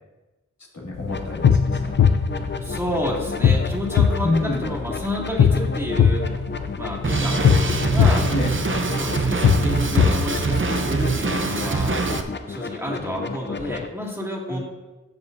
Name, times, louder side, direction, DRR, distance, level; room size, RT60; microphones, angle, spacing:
voice 1, 0.7-1.9 4.2-4.6 8.3-8.5 14.5-14.6, left 2 dB, 65° left, -4 dB, 2.4 m, -27 dB
sound 1, 0.9-10.9, left 7 dB, 85° left, 0.5 m, -21 dB
sound 2, 1.1-13.9, left 4 dB, 35° left, 0.6 m, -33 dB
voice 2, 2.6-6.3 6.7-7.5 7.9-8.3 8.9-11.9 12.4-14.6, left 1 dB, 10° right, -3 dB, 2.2 m, -30 dB
Drum kit, 7.0-12.2, right 3 dB, 40° right, 0.7 m, -24 dB
13.5 x 5.4 x 2.7 m, 1.1 s
wide cardioid pair, 50°, 31 cm